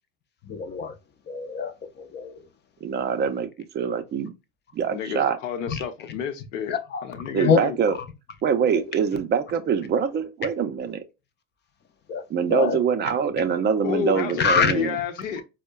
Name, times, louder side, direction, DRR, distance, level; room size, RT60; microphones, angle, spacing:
voice 1, 0.4-1.0 1.3-2.5 5.7-5.8 6.7-7.6 7.9-8.0 8.7-8.8 12.1-12.2 12.5-12.8 14.4-14.7, left 6 dB, 30° left, 0.5 m, -25 dB
voice 2, 2.8-3.5 3.7-4.3 4.7-5.4 7.3-7.9 8.4-11.0 12.3-14.9, right 7 dB, 30° right, 0.5 m, -24 dB
voice 3, 4.9-6.8 7.0-7.8 13.8-15.4, left 7 dB, 85° left, 0.7 m, -30 dB
4.3 x 2.1 x 2.2 m
supercardioid pair, 95°, 37 cm